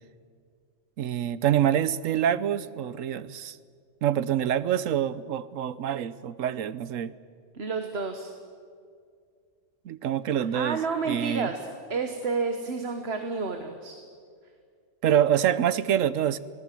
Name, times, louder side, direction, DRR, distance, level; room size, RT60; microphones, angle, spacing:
voice 1, 1.0-3.6 4.0-7.1 9.8-10.8 11.1-11.5 15.0-16.4, right 10 dB, 90° right, 16 dB, 1.1 m, -26 dB
voice 2, 7.5-8.3 10.5-13.9, right 4 dB, 55° right, 6 dB, 1.5 m, -30 dB
25.0 x 17.5 x 7.6 m, 2.2 s
omnidirectional pair, 1.3 m